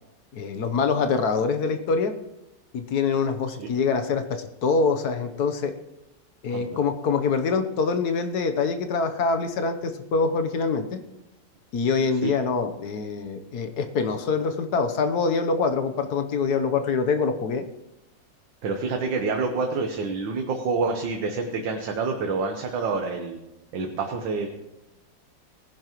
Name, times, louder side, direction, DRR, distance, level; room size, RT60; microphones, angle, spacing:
voice 1, 0.3-2.1 2.7-5.7 6.4-10.8 11.7-17.6, left 4 dB, 60° left, 8 dB, 1.4 m, -25 dB
voice 2, 18.6-23.4 23.7-24.5, right 4 dB, 85° right, 3 dB, 1.8 m, -27 dB
19.0 x 10.5 x 3.0 m, 0.92 s
omnidirectional pair, 2.0 m